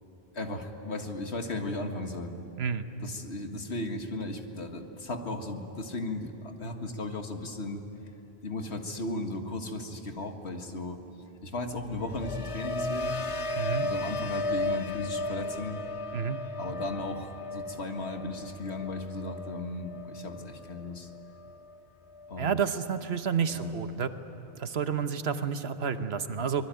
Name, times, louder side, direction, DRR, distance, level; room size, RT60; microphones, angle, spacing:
voice 1, 0.3-2.3 3.0-7.8 8.4-11.0 11.4-13.1 13.8-15.8 16.6-21.1 22.3-22.6 23.5-23.7, left 2 dB, 90° left, 5 dB, 2.0 m, -36 dB
sound 1, 11.8-21.8 22.1-22.6, left 2 dB, 35° left, 0.8 m, -35 dB
voice 2, 13.6-13.9 16.1-16.4 22.4-24.1 24.6-26.7, right 7 dB, 75° right, 10 dB, 1.3 m, -30 dB
25.0 x 21.0 x 9.1 m, 3.0 s
omnidirectional pair, 1.1 m